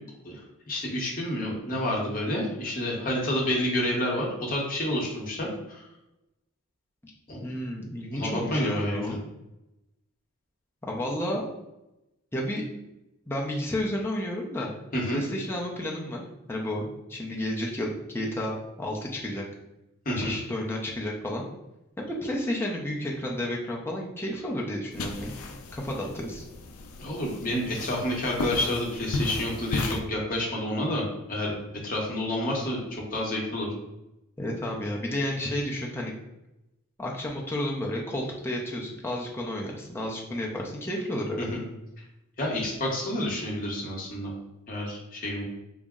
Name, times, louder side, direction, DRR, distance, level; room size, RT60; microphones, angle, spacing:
voice 1, 0.7-5.8 7.3-7.4 8.1-9.2 14.9-15.2 20.0-20.3 27.0-31.6 31.8-33.7 41.4-41.6 42.4-44.3 44.7-45.4, left 1 dB, 40° left, -2 dB, 0.8 m, -29 dB
voice 2, 7.4-9.2 10.8-11.5 12.3-12.6 13.3-14.7 15.1-16.2 16.5-19.5 20.2-21.5 22.0-25.3 25.7-26.5 34.4-36.1 37.0-41.6, left 1 dB, 10° left, -2 dB, 0.5 m, -31 dB
sound 1, 24.9-30.0, left 2 dB, 75° left, 0.4 m, -35 dB
3.9 x 2.0 x 3.5 m, 0.94 s
head